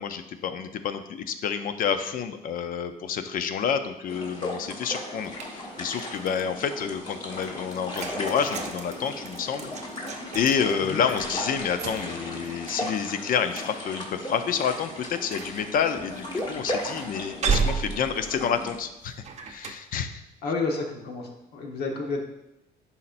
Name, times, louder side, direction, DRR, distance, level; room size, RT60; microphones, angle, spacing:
voice 1, 0.0-20.2, left 7 dB, 55° left, 9 dB, 0.6 m, -29 dB
sound 1, 4.1-18.8, left 1 dB, 25° left, 1.5 m, -36 dB
sound 2, 5.2-6.5 6.9-19.7, right 5 dB, 40° right, 0.7 m, -35 dB
voice 2, 20.4-22.3, left 3 dB, 75° left, 1 dB, 1.4 m, -30 dB
11.0 x 4.3 x 2.6 m, 0.91 s
cardioid pair, 110°, 17 cm